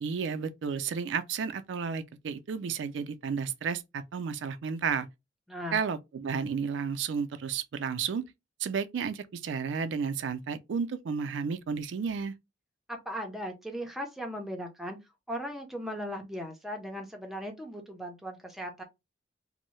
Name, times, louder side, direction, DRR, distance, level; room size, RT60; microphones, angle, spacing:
voice 1, 0.0-5.1 5.7-8.2 8.6-12.3, right 6 dB, 75° right, 0.4 m, -32 dB
voice 2, 12.9-15.0 15.3-18.8, equal, ahead, 0.5 m, -38 dB
2.6 x 2.0 x 3.0 m
head